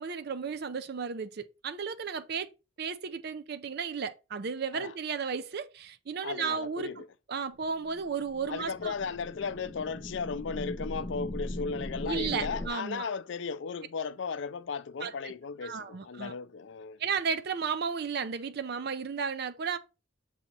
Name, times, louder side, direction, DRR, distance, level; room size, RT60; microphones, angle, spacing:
voice 1, 0.0-2.5 2.8-8.9 12.1-13.0 15.0-15.3 15.6-16.3 17.0-19.8, right 6 dB, 55° right, 0.5 m, -34 dB
voice 2, 6.2-7.1 8.5-17.0, left 5 dB, 70° left, 0.4 m, -36 dB
sound 1, 7.8-12.7, left 1 dB, 30° left, 0.6 m, -39 dB
7.1 x 2.9 x 5.2 m
head